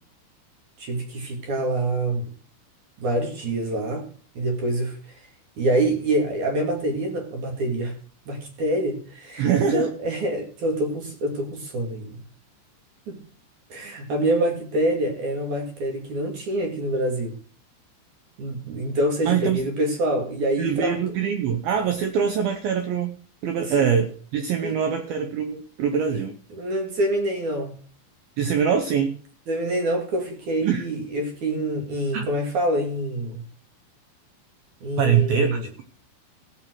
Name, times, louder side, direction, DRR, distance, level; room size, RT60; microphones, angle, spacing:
voice 1, 0.8-2.3 3.0-4.1 4.3-5.0 5.6-7.9 8.3-12.1 13.1-13.2 13.7-17.4 18.4-21.0 23.6-23.8 24.6-24.8 26.1-26.2 26.5-27.8 29.5-33.4 34.8-35.6, right 1 dB, 50° right, 2 dB, 2.9 m, -26 dB
voice 2, 9.4-9.9 19.2-19.6 20.6-23.2 23.4-26.3 28.4-29.2 30.6-30.8 32.1-32.3 35.0-35.8, right 7 dB, 75° right, 7 dB, 2.2 m, -23 dB
17.0 x 5.9 x 6.1 m, 0.43 s
omnidirectional pair, 5.4 m